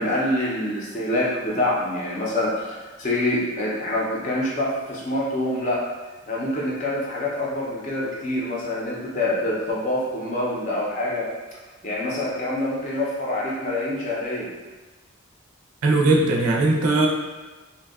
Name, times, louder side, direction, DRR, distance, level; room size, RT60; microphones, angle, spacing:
voice 1, 0.0-5.8 6.3-11.3 11.8-14.5, left 1 dB, 35° left, -5 dB, 0.5 m, -26 dB
voice 2, 15.8-17.1, right 2 dB, 90° right, 0 dB, 0.4 m, -19 dB
2.6 x 2.2 x 2.3 m, 1.2 s
head